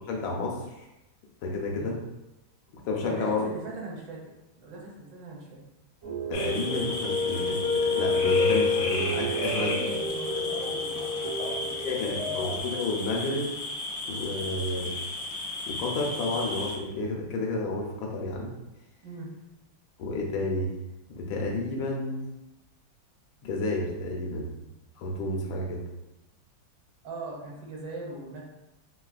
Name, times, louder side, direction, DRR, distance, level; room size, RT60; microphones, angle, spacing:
voice 1, 0.1-0.6 1.4-2.0 2.7-3.5 6.3-9.7 11.4-11.5 11.8-13.5 14.1-14.9 15.7-18.5 20.0-20.7 21.1-22.2 23.4-24.5 25.0-25.8, left 2 dB, 85° left, -1 dB, 1.4 m, -31 dB
voice 2, 3.0-5.6 9.5-12.4 19.0-19.3 27.0-28.4, right 2 dB, 75° right, -2 dB, 1.4 m, -40 dB
sound 1, 6.0-12.6, left 3 dB, 45° right, 0.4 m, -29 dB
sound 2, 6.3-16.8, left 2 dB, 70° left, 0.8 m, -34 dB
3.4 x 3.0 x 2.4 m, 0.94 s
omnidirectional pair, 2.1 m